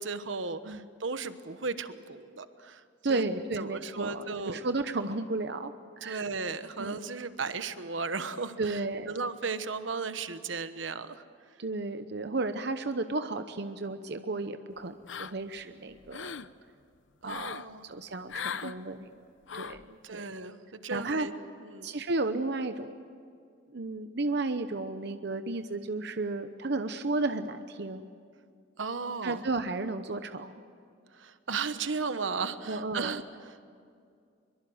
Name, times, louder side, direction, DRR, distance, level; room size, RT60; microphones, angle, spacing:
voice 1, 0.0-2.8 3.1-3.2 3.6-4.7 6.0-11.2 17.2-17.9 20.0-21.3 21.6-21.9 28.8-29.4 31.1-33.6, right 4 dB, 85° right, 11 dB, 1.1 m, -35 dB
voice 2, 3.0-6.2 6.8-7.0 8.6-9.2 11.6-16.4 17.2-19.1 19.5-20.3 20.9-21.3 21.8-22.9 23.7-28.1 29.2-30.6 32.7-33.2, right 3 dB, 60° right, 9 dB, 0.9 m, -33 dB
sound 1, 15.1-15.6 15.9-16.5 17.2-17.7 18.3-18.8 19.5-19.8, left 7 dB, 80° left, 0.7 m, -38 dB
23.5 x 23.0 x 7.9 m, 2.3 s
head